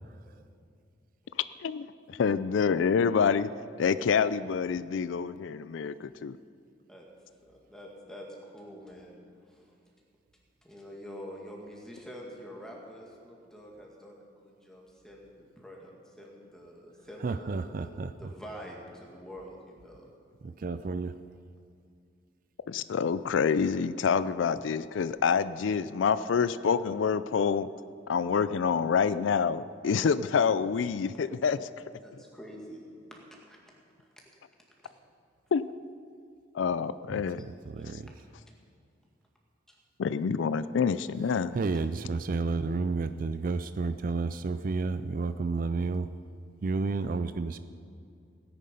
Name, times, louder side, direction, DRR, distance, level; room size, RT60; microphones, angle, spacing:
voice 1, 1.6-3.5 3.8-6.4 22.7-27.7 28.1-31.7 35.5-35.6 36.5-37.4 40.0-41.6, left 6 dB, 80° left, 15 dB, 0.4 m, -27 dB
voice 2, 7.5-9.6 10.6-17.9 18.2-20.1 32.0-32.8 33.1-33.6 34.8-34.9 37.6-37.8 39.7-39.8, equal, 5° left, -1 dB, 2.0 m, -46 dB
voice 3, 17.2-18.1 20.4-21.2 37.1-38.1 41.5-46.1 46.6-47.6, right 4 dB, 45° right, 12 dB, 0.4 m, -31 dB
17.0 x 10.0 x 5.4 m, 2.3 s
head